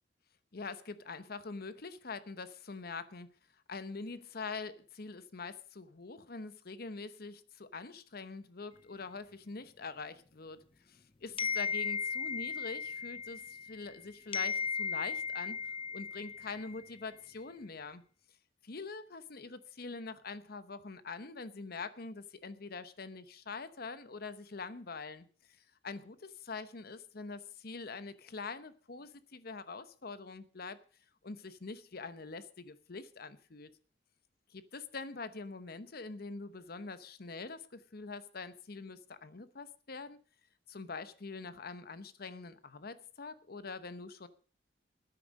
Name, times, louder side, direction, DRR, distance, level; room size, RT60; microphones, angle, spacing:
voice 1, 0.5-3.3 3.7-18.0 18.6-30.8 31.2-33.7 34.5-40.2 40.7-44.3, left 4 dB, 60° left, 13 dB, 0.9 m, -44 dB
sound 1, 11.4-14.0 14.3-16.9, left 6 dB, 30° left, 0.6 m, -36 dB
13.5 x 10.0 x 6.4 m, 0.43 s
head